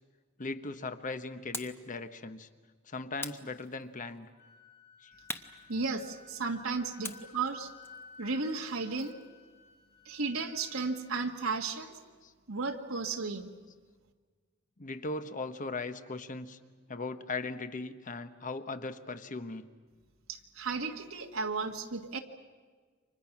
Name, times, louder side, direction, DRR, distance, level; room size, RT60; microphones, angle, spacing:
voice 1, 0.4-2.5 2.8-4.3 5.0-5.1 7.1-7.2 12.2-12.3 14.8-16.6 16.9-19.7, left 3 dB, 40° left, 10 dB, 1.2 m, -38 dB
sound 1, 1.5-1.9 3.2-4.1 5.3-6.4 7.0-9.3, left 2 dB, 10° left, 1.0 m, -44 dB
Wind instrument woodwind instrument, 4.0-11.8, left 4 dB, 55° left, 5.8 m, -56 dB
voice 2, 5.7-7.7 8.2-9.2 10.1-12.0 12.5-13.5 20.3-22.2, right 4 dB, 85° right, 2 dB, 1.8 m, -34 dB
29.5 x 25.5 x 6.0 m, 1.5 s
head